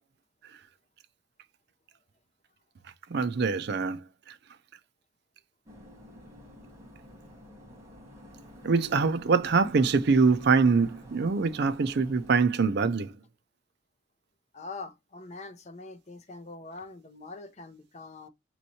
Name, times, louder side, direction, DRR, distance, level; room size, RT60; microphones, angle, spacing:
voice 1, 3.1-4.0 4.3-4.4 8.6-13.1, right 4 dB, 55° right, 0.5 m, -24 dB
sound 1, 5.7-12.3, left 1 dB, 15° right, 1.3 m, -50 dB
voice 2, 14.5-18.3, left 3 dB, 35° left, 0.6 m, -43 dB
6.2 x 3.0 x 2.6 m
head